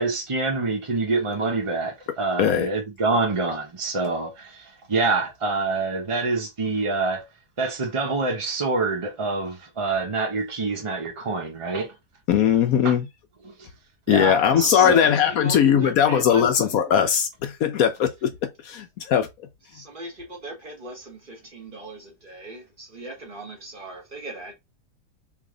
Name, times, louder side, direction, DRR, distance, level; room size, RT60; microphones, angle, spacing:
voice 1, 0.0-7.2 7.6-11.9 12.8-12.9 13.4-13.5 14.1-15.1, right 3 dB, 55° right, 0.3 m, -26 dB
voice 2, 12.3-13.1 14.1-18.3 18.6-19.3, left 9 dB, 70° left, 0.9 m, -19 dB
voice 3, 14.2-16.8 19.7-24.5, right 2 dB, 35° right, 1.2 m, -39 dB
3.1 x 2.7 x 3.7 m
omnidirectional pair, 1.9 m